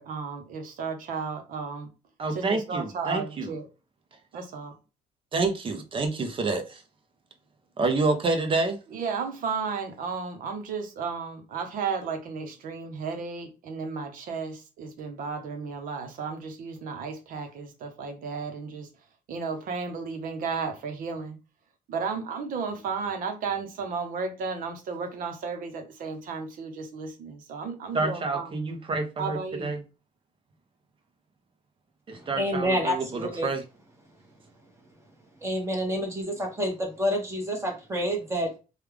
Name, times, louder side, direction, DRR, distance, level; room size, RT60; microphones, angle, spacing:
voice 1, 0.0-1.9 2.3-3.7 4.3-4.7 8.9-18.9 19.3-21.4 21.9-28.6 29.2-29.7, right 5 dB, 65° right, 0.9 m, -34 dB
voice 2, 2.2-3.5 5.3-6.8 7.8-8.8 27.9-29.8 32.1-33.6, right 3 dB, 35° right, 0.8 m, -28 dB
voice 3, 32.1-33.5 35.4-38.6, equal, 20° right, 1.3 m, -28 dB
3.2 x 2.4 x 3.3 m
cardioid pair, 120°, 15 cm